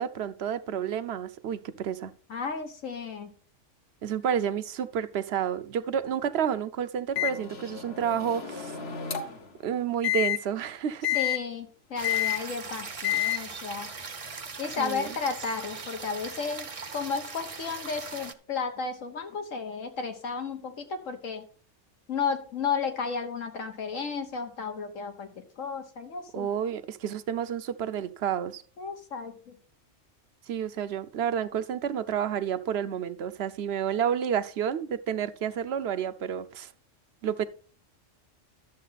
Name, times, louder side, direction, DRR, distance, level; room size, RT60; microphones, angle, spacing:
voice 1, 0.0-2.1 4.0-8.7 9.6-11.2 14.8-15.2 26.3-28.6 30.5-36.7 37.2-37.4, right 8 dB, 60° right, 0.9 m, -30 dB
voice 2, 2.3-3.3 11.1-13.9 14.6-21.4 22.1-26.5 28.8-29.6, left 5 dB, 80° left, 1.8 m, -33 dB
Microwave oven, 7.2-9.5 10.0-10.4 11.0-11.4 12.0-12.4 13.0-13.4, left 13 dB, 55° left, 1.3 m, -29 dB
sound 1, 12.0-18.3, right 4 dB, 30° right, 0.7 m, -40 dB
12.0 x 7.5 x 4.1 m
omnidirectional pair, 1.3 m